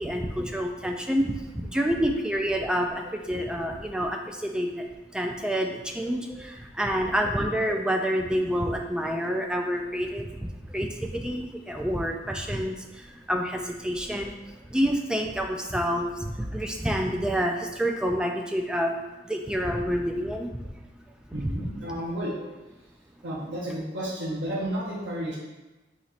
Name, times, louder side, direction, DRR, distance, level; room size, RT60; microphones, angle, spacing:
voice 1, 0.0-4.9 5.1-20.8 21.3-21.6, equal, 5° right, 3 dB, 0.3 m, -28 dB
voice 2, 21.3-22.3 23.2-25.4, right 1 dB, 85° right, -5 dB, 0.9 m, -32 dB
4.1 x 3.0 x 4.1 m, 1.1 s
head